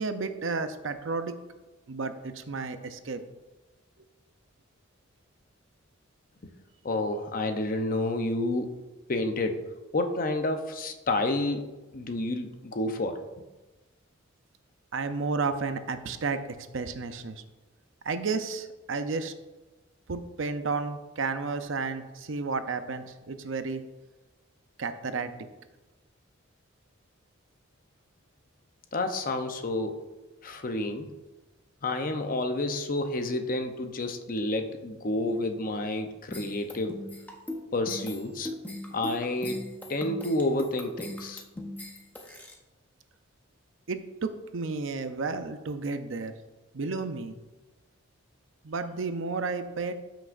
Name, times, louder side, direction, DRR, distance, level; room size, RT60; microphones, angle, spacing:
voice 1, 0.0-1.3 1.9-3.2 14.9-16.4 16.7-17.4 18.0-19.3 20.1-23.8 24.8-25.3 43.9-46.3 46.7-47.4 48.6-49.9, right 4 dB, 70° right, 9 dB, 0.6 m, -32 dB
voice 2, 6.8-8.7 9.1-9.7 9.9-13.2 28.9-30.0 30.4-31.1 31.8-37.0 37.7-38.5 38.9-39.6 39.9-41.4, left 2 dB, 45° left, 6 dB, 0.7 m, -29 dB
sound 1, 36.3-42.5, left 1 dB, 10° left, 0.9 m, -39 dB
13.0 x 6.1 x 2.5 m, 1.1 s
head